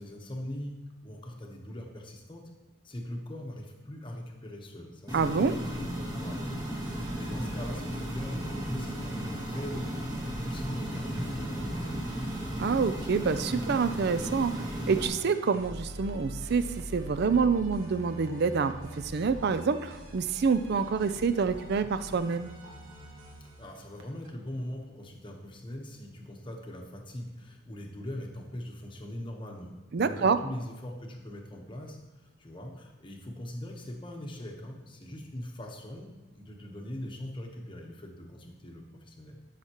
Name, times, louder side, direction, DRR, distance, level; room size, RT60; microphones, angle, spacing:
voice 1, 0.0-2.5 2.8-10.1 10.4-12.1 23.4-39.4, left 1 dB, 25° left, 1 dB, 1.0 m, -41 dB
sound 1, 5.1-15.1, equal, 15° right, 1.3 m, -35 dB
voice 2, 5.1-5.6 12.6-22.5 29.9-30.4, right 5 dB, 50° right, 12 dB, 0.4 m, -27 dB
sound 2, 6.8-24.3, equal, 75° right, 1.3 m, -44 dB
12.5 x 5.8 x 3.0 m, 1.2 s
head